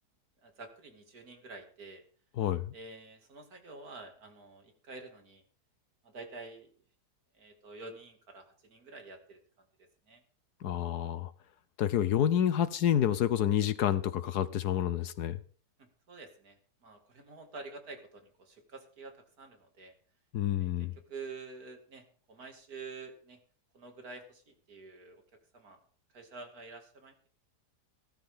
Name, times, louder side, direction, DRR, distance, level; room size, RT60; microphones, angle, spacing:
voice 1, 0.4-2.0 2.7-5.4 6.0-6.7 7.3-9.4 9.8-10.2 15.8-19.9 20.6-23.4 23.7-25.2 25.5-25.8 26.1-27.3, right 3 dB, 60° right, 2.9 m, -48 dB
voice 2, 10.6-11.3 11.8-15.4 20.3-20.9, left 10 dB, 70° left, 1.3 m, -28 dB
16.5 x 14.0 x 3.7 m
omnidirectional pair, 1.8 m